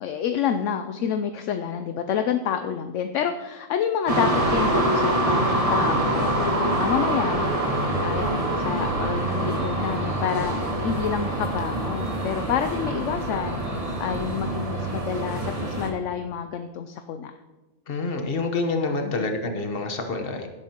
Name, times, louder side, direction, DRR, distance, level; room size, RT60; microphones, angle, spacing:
voice 1, 0.0-17.3 19.0-19.3, left 8 dB, 70° left, 8 dB, 0.9 m, -28 dB
sound 1, 4.1-15.9, right 1 dB, 25° right, 1.5 m, -25 dB
voice 2, 17.9-20.5, left 3 dB, 45° left, 5 dB, 1.2 m, -27 dB
16.5 x 8.1 x 2.9 m, 1.2 s
omnidirectional pair, 1.4 m